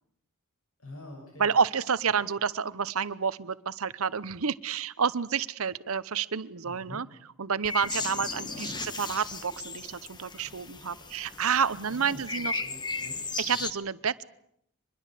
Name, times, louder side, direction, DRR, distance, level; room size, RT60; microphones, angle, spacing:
voice 1, 0.8-1.5 6.6-7.0 8.2-8.8 11.9-13.2 13.4-13.6, left 1 dB, 70° left, 1 dB, 6.5 m, -46 dB
voice 2, 1.4-7.1 7.4-12.6 13.4-14.2, right 6 dB, 70° right, 16 dB, 0.8 m, -29 dB
sound 1, 7.6-13.7, left 4 dB, 20° left, 1.2 m, -36 dB
24.5 x 21.5 x 7.6 m, 0.74 s
head